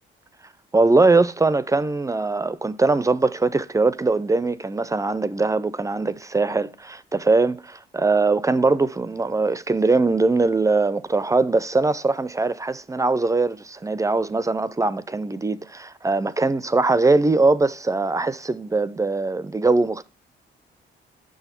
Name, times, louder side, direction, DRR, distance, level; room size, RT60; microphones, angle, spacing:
voice 1, 0.7-20.1, right 3 dB, 15° right, 0.4 m, -21 dB
7.0 x 6.2 x 4.3 m
cardioid pair, 90°, 20 cm